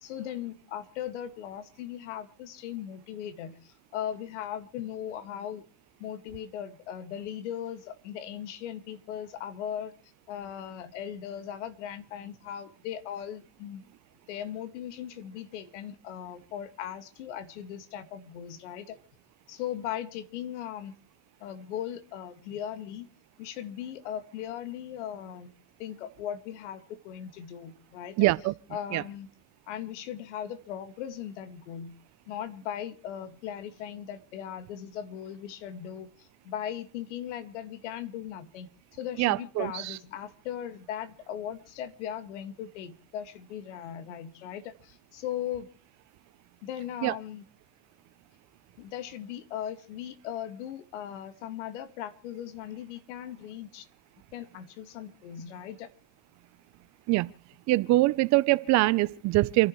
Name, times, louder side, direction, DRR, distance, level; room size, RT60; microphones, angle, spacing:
voice 1, 0.0-5.6 6.0-9.9 10.3-13.9 14.3-19.0 19.5-20.9 21.4-23.1 23.4-25.5 25.8-28.3 28.7-29.3 29.7-31.9 32.3-45.7 46.6-47.5 48.8-53.9 54.3-55.9, left 10 dB, 80° left, 1.9 m, -38 dB
voice 2, 28.2-28.5 28.9-29.0 39.2-39.9 47.0-47.1 57.1-57.3 57.7-59.7, right 19 dB, 50° right, 0.7 m, -23 dB
29.0 x 11.5 x 3.1 m
supercardioid pair, 105°, 35 cm